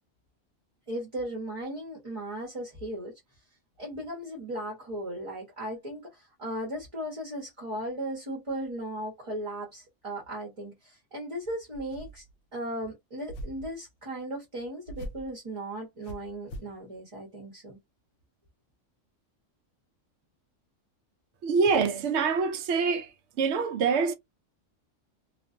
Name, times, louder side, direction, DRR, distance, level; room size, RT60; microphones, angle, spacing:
voice 1, 0.9-3.1 3.8-12.2 12.5-17.8, right 1 dB, 30° right, 0.9 m, -37 dB
sound 1, 11.7-12.3 13.3-13.7 14.9-15.3 16.0-16.8, equal, 70° left, 0.8 m, -41 dB
voice 2, 21.4-23.1 23.4-24.1, right 5 dB, 70° right, 0.8 m, -25 dB
2.5 x 2.3 x 2.5 m
omnidirectional pair, 1.3 m